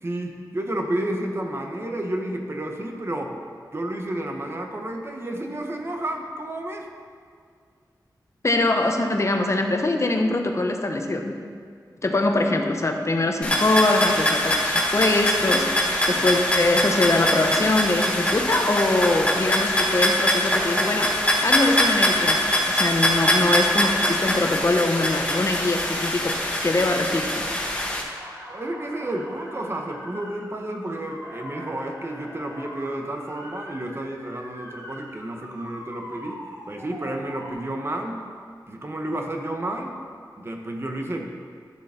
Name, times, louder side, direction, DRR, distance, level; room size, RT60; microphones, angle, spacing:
voice 1, 0.0-3.4 3.7-6.9 28.5-36.4 36.7-38.3 38.7-40.0 40.4-41.3, right 1 dB, 35° right, 2 dB, 1.2 m, -31 dB
voice 2, 8.4-11.4 12.0-21.2 21.4-26.4 26.6-27.5, left 2 dB, 40° left, 4 dB, 1.0 m, -23 dB
sound 1, 13.4-28.0, left 1 dB, 15° left, 1.5 m, -23 dB
Motor vehicle (road) / Siren, 22.9-23.6 23.8-26.8 27.2-27.8 28.2-37.5, equal, 85° right, 2.4 m, -43 dB
12.0 x 6.9 x 4.4 m, 2.1 s
wide cardioid pair, 75°, 7 cm